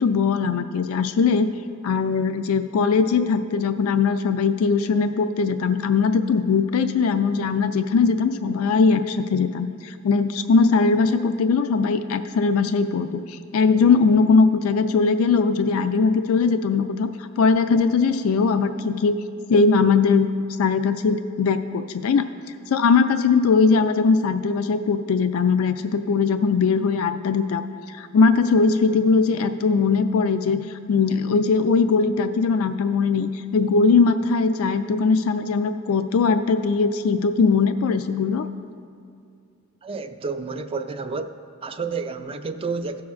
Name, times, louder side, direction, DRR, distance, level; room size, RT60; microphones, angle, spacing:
voice 1, 0.0-1.5 1.8-17.1 17.4-19.2 19.5-20.3 20.6-22.2 22.7-27.6 27.9-30.6 30.9-38.5, left 4 dB, 80° left, 10 dB, 0.4 m, -20 dB
voice 2, 39.8-41.4 41.6-43.0, right 4 dB, 25° right, 8 dB, 0.3 m, -30 dB
17.0 x 6.2 x 2.4 m, 2.4 s
head